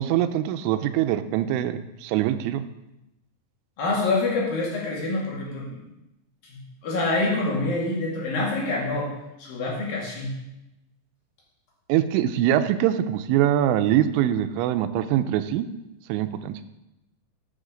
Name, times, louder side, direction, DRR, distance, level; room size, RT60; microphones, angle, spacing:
voice 1, 0.0-2.7 11.9-15.7 16.1-16.5, right 11 dB, 85° right, 10 dB, 3.0 m, -23 dB
voice 2, 3.8-5.8 6.4-6.6 6.8-9.1 9.4-10.3, left 2 dB, 55° left, -4 dB, 3.6 m, -26 dB
14.5 x 7.8 x 3.8 m, 0.93 s
omnidirectional pair, 5.4 m